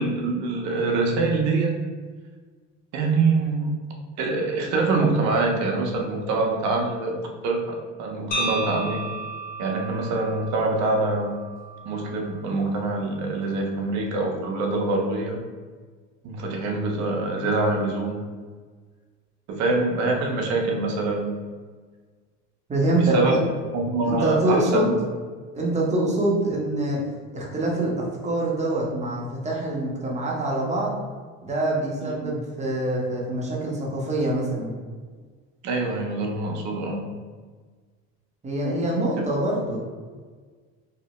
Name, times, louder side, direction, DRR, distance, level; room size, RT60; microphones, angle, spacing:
voice 1, 0.0-1.8 2.9-3.7 4.2-9.1 9.6-11.4 11.8-15.4 16.2-18.2 19.5-21.3 22.9-23.4 23.7-25.0 32.0-32.3 35.6-37.0, right 3 dB, 60° right, 1 dB, 0.7 m, -25 dB
sound 1, 8.3-12.4, right 2 dB, 30° left, 0.5 m, -33 dB
voice 2, 22.7-23.5 24.0-24.9 25.5-27.1 27.3-30.9 31.4-34.8 38.4-39.8, right 1 dB, 20° right, -3 dB, 0.7 m, -25 dB
2.8 x 2.0 x 3.0 m, 1.5 s
supercardioid pair, 105°, 33 cm